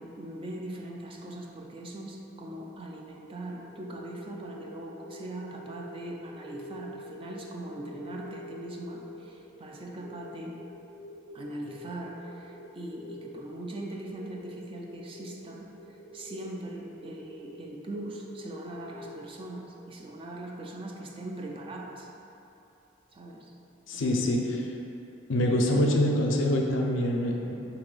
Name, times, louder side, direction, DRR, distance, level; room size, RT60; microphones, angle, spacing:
voice 1, 0.0-10.6 11.3-22.1 23.1-23.5 23.9-24.1, right 1 dB, 30° right, 0 dB, 0.3 m, -40 dB
sound 1, 3.6-19.9, equal, 65° right, 0.7 m, -47 dB
voice 2, 23.9-24.7 25.3-27.5, left 1 dB, 80° left, 1 dB, 0.5 m, -25 dB
4.0 x 2.8 x 3.8 m, 2.8 s
head